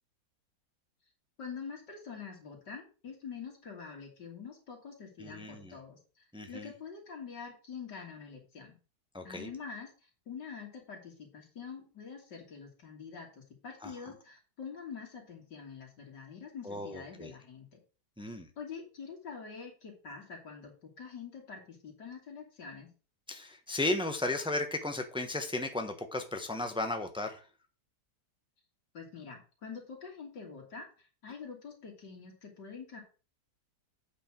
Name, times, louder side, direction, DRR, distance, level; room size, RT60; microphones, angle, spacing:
voice 1, 1.4-8.8 9.2-17.8 18.6-22.9 28.9-33.0, left 6 dB, 85° left, -1 dB, 3.2 m, -46 dB
voice 2, 5.2-5.8 6.3-6.7 9.1-9.5 13.8-13.9 16.6-17.3 18.2-18.5 23.3-27.4, left 2 dB, 5° right, 6 dB, 0.9 m, -35 dB
8.5 x 5.1 x 6.1 m, 0.35 s
omnidirectional pair, 1.8 m